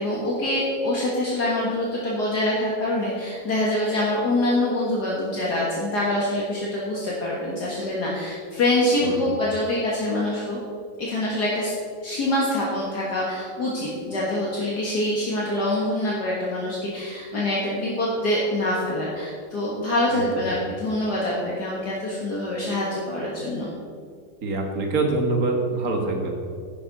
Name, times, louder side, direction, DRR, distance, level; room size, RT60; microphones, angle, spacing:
voice 1, 0.0-10.6 11.0-11.7 12.0-23.7, left 1 dB, 60° left, -5 dB, 2.1 m, -25 dB
voice 2, 20.1-20.5 24.4-26.3, right 2 dB, 50° right, 2 dB, 2.0 m, -25 dB
11.0 x 10.5 x 4.0 m, 2.2 s
omnidirectional pair, 2.1 m